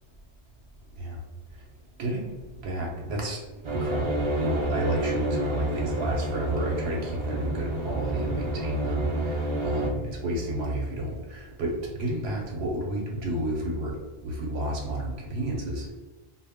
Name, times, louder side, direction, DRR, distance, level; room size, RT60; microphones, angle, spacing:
voice 1, 2.0-2.3 2.6-3.4 3.7-9.1 9.6-13.9 14.2-15.9, right 1 dB, 80° right, -2 dB, 0.8 m, -30 dB
sound 1, 3.6-9.9, right 1 dB, 50° right, 0.4 m, -29 dB
2.1 x 2.0 x 3.4 m, 1.2 s
omnidirectional pair, 1.1 m